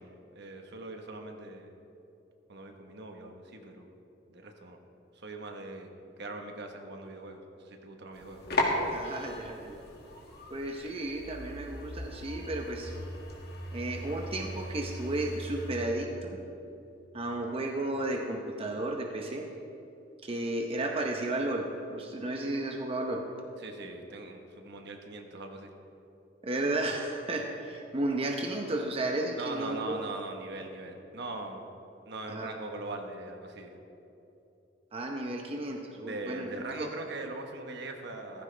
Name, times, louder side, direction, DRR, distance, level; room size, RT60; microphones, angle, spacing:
voice 1, 0.0-1.7 2.5-3.9 4.3-4.8 5.2-5.9 6.2-8.4 23.6-25.7 29.4-31.6 32.0-33.7 36.0-38.4, right 2 dB, 60° right, 4 dB, 1.3 m, -41 dB
sound 1, 8.1-15.7, left 1 dB, 55° left, 2.0 m, -36 dB
voice 2, 8.9-9.8 10.5-13.0 13.7-16.4 17.1-19.5 20.2-23.3 26.4-30.0 32.3-32.5 34.9-36.9, right 2 dB, 30° right, 2 dB, 0.9 m, -33 dB
16.0 x 14.5 x 3.4 m, 2.9 s
head